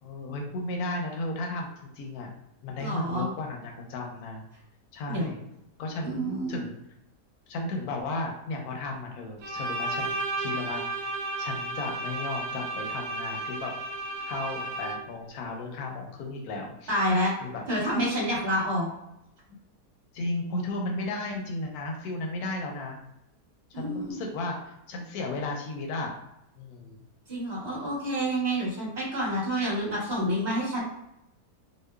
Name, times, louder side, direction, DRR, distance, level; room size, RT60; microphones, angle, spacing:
voice 1, 0.0-1.7 1.9-2.3 2.6-4.5 4.9-5.4 5.8-6.8 7.5-11.1 11.4-13.7 14.3-16.9 17.4-17.6 20.1-23.0 23.7-26.2 26.6-27.0, left 2 dB, 70° left, 2 dB, 1.0 m, -34 dB
voice 2, 2.8-3.3 5.1-5.3 6.0-6.6 16.9-17.3 17.7-18.9 23.7-24.2 27.3-30.8, equal, 30° right, -8 dB, 1.1 m, -28 dB
Bowed string instrument, 9.4-15.2, right 2 dB, 75° right, 1.1 m, -33 dB
2.9 x 2.1 x 2.2 m, 0.83 s
omnidirectional pair, 1.8 m